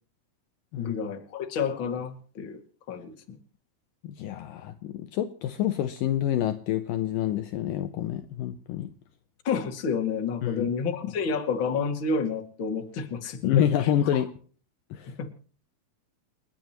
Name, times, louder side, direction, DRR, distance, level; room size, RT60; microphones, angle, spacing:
voice 1, 0.8-2.6 2.9-3.4 9.4-13.4 13.8-13.9 15.2-15.3, left 5 dB, 40° left, 4 dB, 2.2 m, -29 dB
voice 2, 4.0-8.9 10.4-10.7 13.4-14.3 14.9-15.2, left 11 dB, 75° left, 9 dB, 2.3 m, -27 dB
29.5 x 10.5 x 2.9 m, 0.41 s
omnidirectional pair, 4.4 m